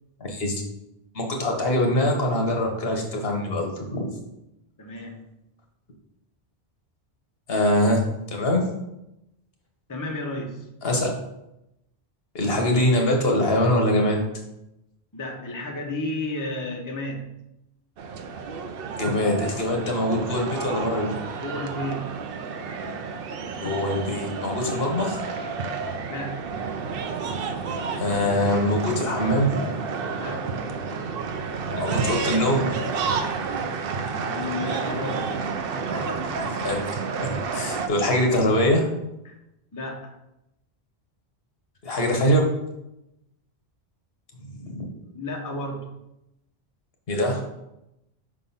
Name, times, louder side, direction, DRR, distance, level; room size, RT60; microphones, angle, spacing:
voice 1, 0.2-0.5 1.1-4.1 7.5-8.0 8.3-8.6 10.8-11.1 12.3-14.2 19.0-21.1 23.5-25.2 28.0-29.7 31.7-32.8 36.6-36.8 37.2-38.9 41.8-42.5 44.4-44.9 47.1-47.4, left 1 dB, 65° left, 2 dB, 1.3 m, -23 dB
voice 2, 4.8-5.2 9.9-10.7 15.1-17.4 21.4-22.2 26.1-26.6 30.2-30.5 34.2-35.3 35.7-36.4 39.2-39.4 39.7-40.2 45.1-45.9, left 1 dB, 20° left, 2 dB, 0.7 m, -33 dB
sound 1, 18.0-37.9, right 5 dB, 65° right, 0.8 m, -30 dB
5.1 x 3.7 x 5.5 m, 0.87 s
omnidirectional pair, 1.1 m